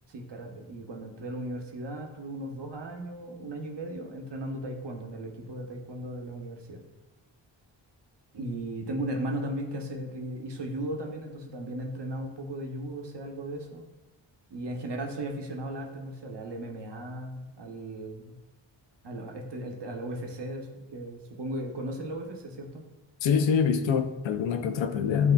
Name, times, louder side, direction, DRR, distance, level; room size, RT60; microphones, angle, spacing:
voice 1, 0.1-6.8 8.3-13.8 14.5-18.3 19.0-22.9, right 1 dB, 60° right, 2 dB, 0.9 m, -36 dB
voice 2, 23.2-25.3, left 6 dB, 70° left, 8 dB, 0.5 m, -24 dB
7.8 x 2.8 x 2.2 m, 1.1 s
cardioid pair, 45°, 48 cm